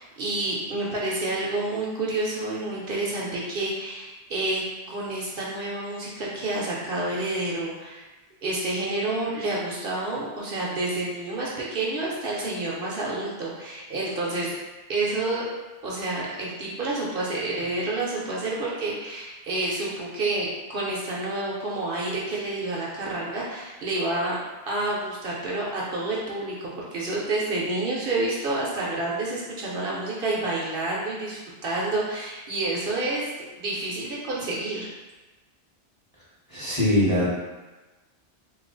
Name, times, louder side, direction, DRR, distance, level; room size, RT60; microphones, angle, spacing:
voice 1, 0.0-8.1 8.4-14.5 14.9-15.5 15.8-24.4 24.7-33.3 33.6-34.9, right 2 dB, 60° right, -5 dB, 0.8 m, -29 dB
voice 2, 36.5-37.3, left 1 dB, 20° left, -9 dB, 0.8 m, -22 dB
2.8 x 2.3 x 3.8 m, 1.2 s
omnidirectional pair, 1.1 m